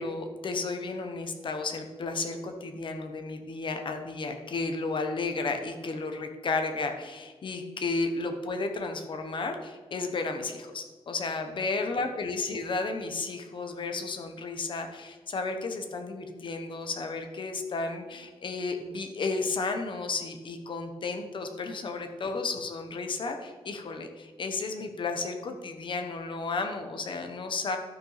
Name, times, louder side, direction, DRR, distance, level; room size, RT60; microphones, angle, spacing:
voice 1, 0.0-27.8, left 3 dB, 50° left, 5 dB, 1.2 m, -33 dB
13.0 x 6.1 x 5.8 m, 1.3 s
wide cardioid pair, 170°, 11 cm